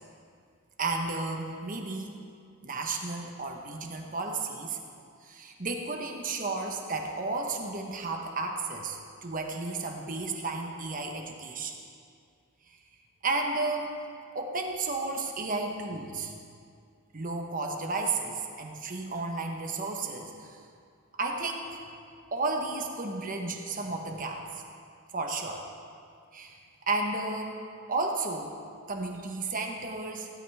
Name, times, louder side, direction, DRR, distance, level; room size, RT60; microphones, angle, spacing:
voice 1, 0.8-2.1 2.6-4.8 5.2-11.8 12.7-12.8 13.2-14.0 14.3-16.3 17.1-20.6 21.1-21.8 22.3-24.6 25.1-25.6 26.3-26.6 26.9-28.5 28.9-30.3, right 3 dB, 40° right, 2 dB, 1.2 m, -33 dB
16.0 x 12.5 x 3.6 m, 2.3 s
head